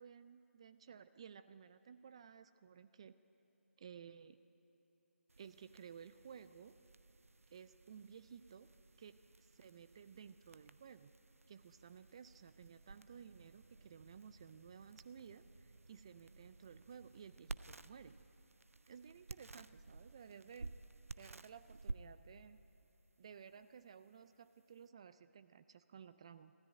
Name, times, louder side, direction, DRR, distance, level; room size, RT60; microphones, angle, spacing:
voice 1, 0.0-3.2 3.8-4.4 5.4-6.8 7.5-8.7 9.0-11.1 11.5-18.1 18.9-20.7 21.2-22.6 23.2-26.5, right 7 dB, 25° right, 13 dB, 0.3 m, -56 dB
sound 1, 5.3-24.9, right 3 dB, 80° right, 0.6 m, -55 dB
21.0 x 14.0 x 9.2 m, 3.0 s
figure-of-eight pair, 155°, 7 cm